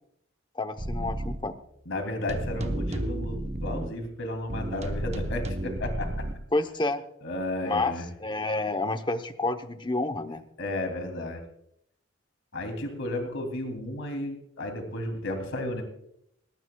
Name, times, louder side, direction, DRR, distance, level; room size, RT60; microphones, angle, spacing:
voice 1, 0.5-1.6 6.5-7.0 7.6-10.4, left 2 dB, 20° left, 8 dB, 0.8 m, -29 dB
sound 1, 0.8-1.4 2.3-3.9 4.5-6.3, right 1 dB, 30° right, 0.9 m, -32 dB
voice 2, 1.9-6.2 7.2-8.1 10.6-11.4 12.5-15.8, left 1 dB, 65° left, 4 dB, 2.8 m, -33 dB
20.0 x 19.0 x 2.3 m, 0.75 s
head